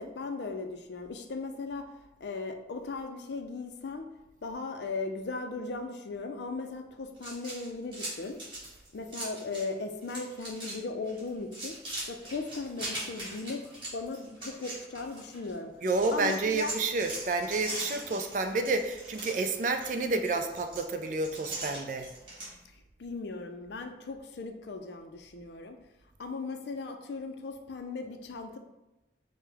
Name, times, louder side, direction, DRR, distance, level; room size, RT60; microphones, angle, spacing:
voice 1, 0.0-1.9 2.2-4.1 4.4-8.4 8.9-11.7 12.1-13.6 13.9-15.7 16.1-16.7 23.0-25.8 26.2-28.6, left 3 dB, 70° left, 6 dB, 0.4 m, -37 dB
sound 1, 7.2-9.7 10.0-10.8 11.1-15.5 15.9-22.5, right 1 dB, 25° right, 1.3 m, -40 dB
voice 2, 15.8-22.1, right 3 dB, 45° right, 6 dB, 0.3 m, -30 dB
4.9 x 2.1 x 3.4 m, 0.98 s
head